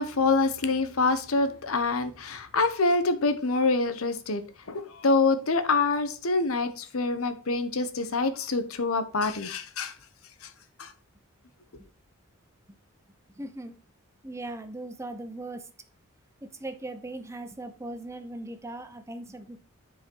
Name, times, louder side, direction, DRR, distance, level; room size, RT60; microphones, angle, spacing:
voice 1, 0.0-4.4 4.7-9.9 10.8-10.9, left 3 dB, 75° left, 1.0 m, -26 dB
voice 2, 13.4-13.7 14.2-15.7 16.4-19.6, right 2 dB, 15° right, 0.7 m, -39 dB
9.3 x 4.9 x 4.6 m
head